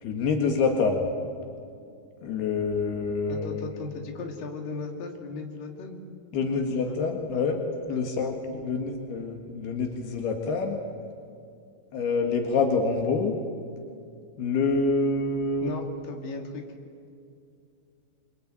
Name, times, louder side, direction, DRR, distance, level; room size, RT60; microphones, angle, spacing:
voice 1, 0.0-1.1 2.2-3.7 6.3-10.8 11.9-13.4 14.4-15.7, left 4 dB, 75° left, 3 dB, 3.8 m, -26 dB
voice 2, 3.3-6.0 6.5-6.6 7.3-7.5 7.9-8.4 15.6-16.6, left 3 dB, 60° left, 3 dB, 4.0 m, -37 dB
25.0 x 25.0 x 9.1 m, 2.4 s
omnidirectional pair, 4.6 m